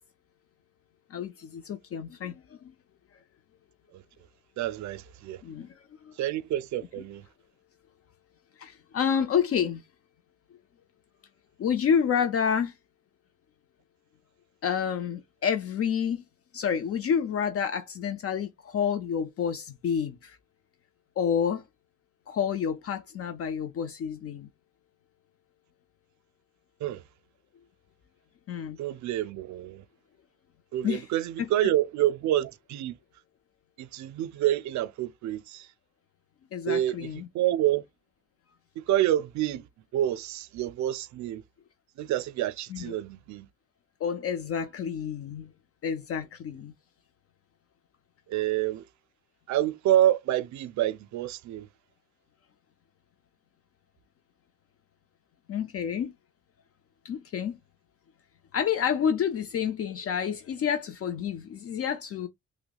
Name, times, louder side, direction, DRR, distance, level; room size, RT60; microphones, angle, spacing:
voice 1, 1.1-2.4 5.4-5.7 6.0-6.1 8.6-9.8 11.6-12.7 14.6-16.2 16.5-20.4 21.2-21.6 22.3-24.5 28.5-28.8 30.8-31.1 31.4-31.5 36.5-37.3 42.7-42.9 44.0-45.5 45.8-46.7 55.5-56.1 57.0-57.6 58.5-62.3, left 7 dB, 50° left, 0.5 m, -29 dB
voice 2, 4.6-5.4 6.2-7.2 26.8-27.0 28.8-29.8 30.7-32.9 33.8-35.7 36.7-37.1 37.3-37.8 38.8-39.7 39.9-41.4 42.0-43.5 48.3-48.8 49.5-51.7, right 12 dB, 70° right, 0.4 m, -28 dB
5.8 x 2.1 x 2.2 m
cardioid pair, 90°, 30 cm